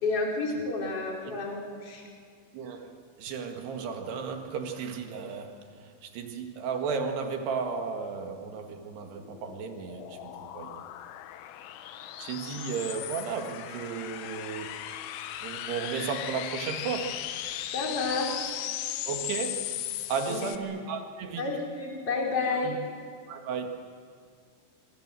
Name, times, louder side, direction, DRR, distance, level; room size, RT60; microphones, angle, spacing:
voice 1, 0.0-2.0 17.7-18.6 20.3-20.4 21.4-22.8, left 3 dB, 30° left, -1 dB, 4.2 m, -30 dB
voice 2, 2.5-5.5 6.0-10.8 12.2-14.7 15.4-17.2 19.1-19.7 20.1-21.5 22.6-22.8 23.3-23.9, right 5 dB, 60° right, 4 dB, 3.5 m, -34 dB
sound 1, 8.7-20.6, left 12 dB, 75° left, 3.1 m, -37 dB
26.0 x 25.0 x 7.6 m, 2.1 s
omnidirectional pair, 6.0 m